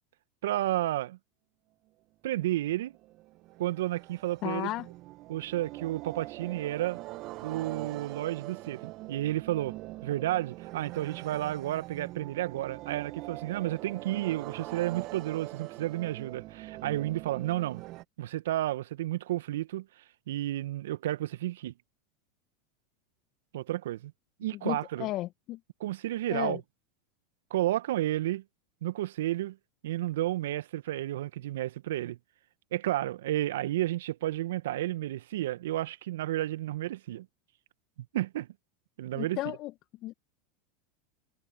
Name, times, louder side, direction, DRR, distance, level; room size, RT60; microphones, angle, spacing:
voice 1, 0.4-1.2 2.2-2.9 3.6-4.7 5.3-7.0 7.4-9.7 10.0-17.8 18.2-19.8 20.3-21.7 23.5-24.1 24.4-25.1 25.8-26.6 27.5-28.4 28.8-29.6 29.8-32.2 32.7-37.3 38.1-38.5 39.0-39.4, right 14 dB, 70° right, 1.3 m, -31 dB
sound 1, 2.5-18.0, right 19 dB, 50° right, 1.7 m, -43 dB
voice 2, 4.4-4.9 24.5-25.6 26.3-26.6 39.1-39.7 40.0-40.1, left 17 dB, 50° left, 1.9 m, -34 dB
hypercardioid pair, 85°, 0 cm